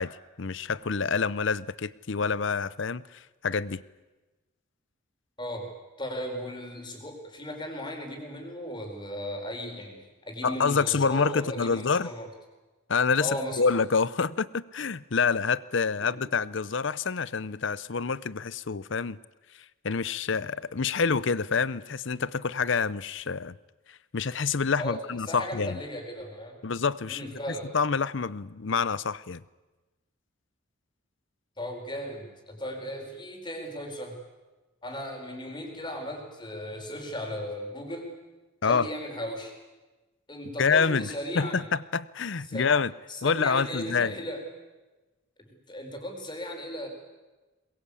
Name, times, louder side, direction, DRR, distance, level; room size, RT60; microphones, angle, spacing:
voice 1, 0.0-3.8 10.4-12.1 12.9-19.2 19.8-23.6 23.9-25.8 26.6-27.4 27.7-29.4 38.6-38.9 40.6-41.1 41.3-42.9 43.2-44.1, left 5 dB, 65° left, 19 dB, 0.7 m, -27 dB
voice 2, 5.4-5.7 6.0-12.3 13.2-13.7 16.0-16.2 24.8-26.6 27.1-27.7 31.6-34.2 34.8-38.1 38.6-39.5 40.3-41.6 42.5-42.7 43.1-44.4 45.5-46.9, equal, 25° left, 3 dB, 4.6 m, -36 dB
22.0 x 21.5 x 8.5 m, 1.2 s
head